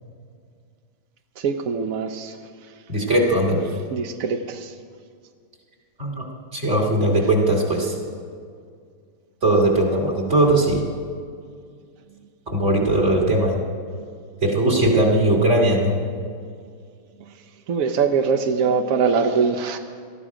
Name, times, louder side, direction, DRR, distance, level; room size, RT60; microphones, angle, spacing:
voice 1, 1.4-2.3 3.9-4.7 17.7-19.8, right 5 dB, 70° right, 6 dB, 0.8 m, -22 dB
voice 2, 2.9-3.6 6.0-6.2 6.5-8.0 9.4-10.8 12.5-13.6 14.4-16.0, right 1 dB, 35° right, 0 dB, 2.7 m, -19 dB
18.5 x 13.5 x 5.0 m, 2.1 s
omnidirectional pair, 2.3 m